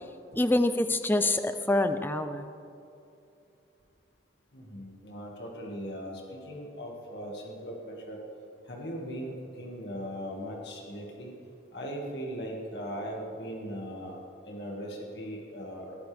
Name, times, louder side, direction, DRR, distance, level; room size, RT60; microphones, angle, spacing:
voice 1, 0.3-2.4, left 1 dB, 10° left, 9 dB, 0.5 m, -26 dB
voice 2, 4.5-8.2 8.7-11.3 11.7-14.2 14.5-16.0, equal, 65° left, -1 dB, 2.1 m, -39 dB
21.0 x 14.5 x 3.5 m, 2.6 s
head